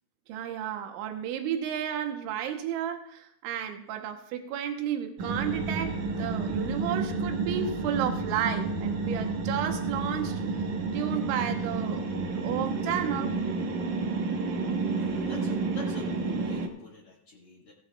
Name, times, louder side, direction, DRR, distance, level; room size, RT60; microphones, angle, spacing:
voice 1, 0.3-10.4 10.9-12.0 12.3-13.4, right 9 dB, 85° right, 5 dB, 3.4 m, -32 dB
sound 1, 5.2-16.7, right 3 dB, 65° right, 1.9 m, -30 dB
voice 2, 14.9-17.7, left 3 dB, 40° left, -7 dB, 2.2 m, -43 dB
18.5 x 13.0 x 2.4 m, 0.70 s
omnidirectional pair, 5.3 m